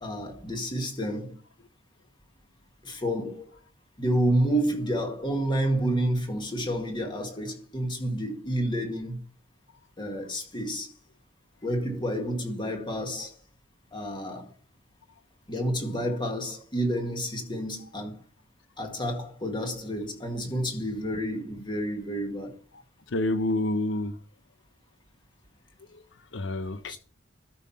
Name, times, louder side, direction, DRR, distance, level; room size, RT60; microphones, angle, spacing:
voice 1, 0.0-1.3 2.8-3.5 4.0-9.2 10.0-10.9 11.6-13.3 13.9-14.5 15.5-18.2 18.8-22.6 26.9-27.0, right 1 dB, 25° left, 1.9 m, -29 dB
voice 2, 23.1-24.2 25.9-26.0 26.3-27.0, left 1 dB, 75° left, 0.7 m, -28 dB
12.5 x 5.6 x 4.3 m
head